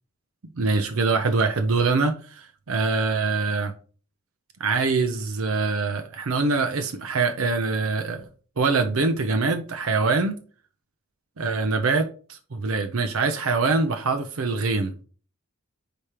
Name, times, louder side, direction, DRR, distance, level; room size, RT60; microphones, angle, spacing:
voice 1, 0.6-3.7 4.6-8.3 8.6-10.3 11.4-14.9, right 4 dB, 70° right, 0.7 m, -24 dB
5.1 x 4.3 x 4.9 m
head